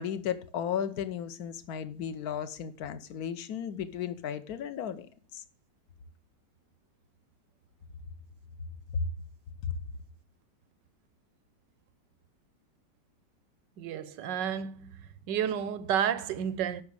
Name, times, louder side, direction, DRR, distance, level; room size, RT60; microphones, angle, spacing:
voice 1, 0.0-5.4 8.9-9.0 9.7-9.8, left 8 dB, 65° left, 1.3 m, -34 dB
voice 2, 13.8-14.9 15.3-16.8, right 9 dB, 90° right, 1.5 m, -31 dB
9.6 x 6.2 x 7.9 m
omnidirectional pair, 1.9 m